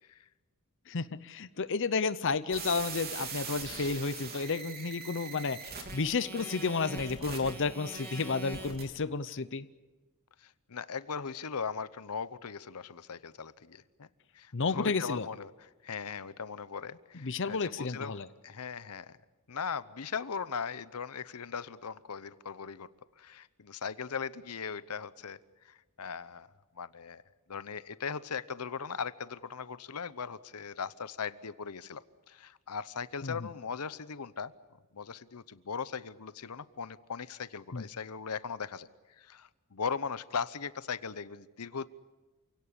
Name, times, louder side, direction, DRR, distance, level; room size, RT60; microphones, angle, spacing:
voice 1, 0.9-5.6 5.9-9.7 14.5-15.3 17.2-18.3 33.2-33.5 37.7-37.8, left 4 dB, 55° left, 14 dB, 0.8 m, -32 dB
sound 1, 2.5-8.8, right 4 dB, 45° right, 3.8 m, -42 dB
voice 2, 10.4-14.1 14.3-19.2 19.5-22.9 23.2-27.2 27.5-34.5 34.9-41.9, left 6 dB, 90° left, 16 dB, 0.8 m, -39 dB
28.0 x 17.0 x 9.8 m, 1.2 s
head